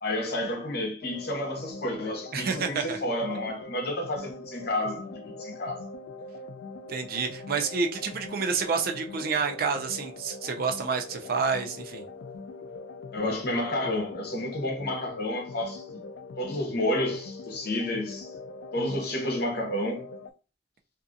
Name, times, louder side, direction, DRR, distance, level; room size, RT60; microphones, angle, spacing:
voice 1, 0.0-5.9 13.1-16.0 16.4-18.3 18.7-20.1, left 1 dB, 60° left, 0.8 m, -30 dB
sound 1, 1.0-20.3, left 3 dB, 80° left, 0.3 m, -42 dB
voice 2, 2.3-3.0 6.9-12.0, right 5 dB, 55° right, 0.4 m, -29 dB
2.6 x 2.4 x 2.5 m
head